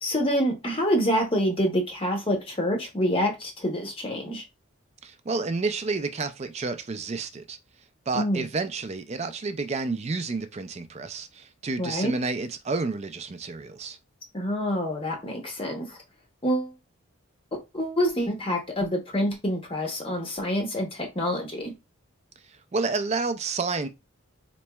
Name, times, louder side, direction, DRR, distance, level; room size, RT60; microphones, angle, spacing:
voice 1, 0.0-4.4 8.1-8.5 11.8-12.1 14.3-16.0 16.4-16.7 17.7-21.7, equal, 25° left, 0.7 m, -27 dB
voice 2, 5.0-7.6 8.1-14.0 22.5-23.9, right 3 dB, 30° right, 0.4 m, -30 dB
4.2 x 3.0 x 2.2 m
head